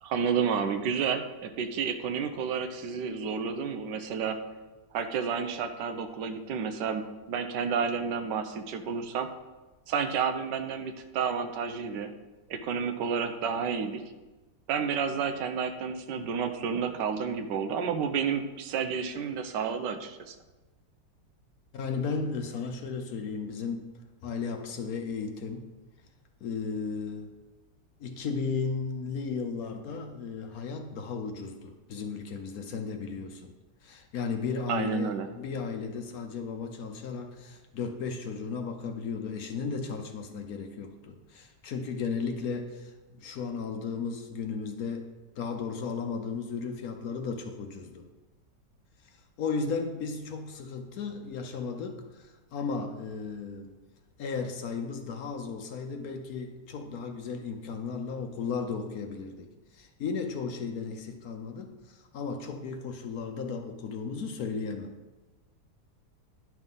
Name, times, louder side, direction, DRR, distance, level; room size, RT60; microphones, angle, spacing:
voice 1, 0.0-4.4 4.9-9.3 9.9-12.1 12.5-14.0 14.7-20.4 34.7-35.3, right 6 dB, 80° right, 8 dB, 1.3 m, -30 dB
voice 2, 21.7-23.9 24.2-25.7 26.4-27.3 28.0-33.5 33.8-45.1 45.4-48.1 49.4-53.8 54.2-65.0, left 5 dB, 65° left, 5 dB, 1.1 m, -35 dB
10.5 x 5.9 x 3.7 m, 1.2 s
omnidirectional pair, 1.9 m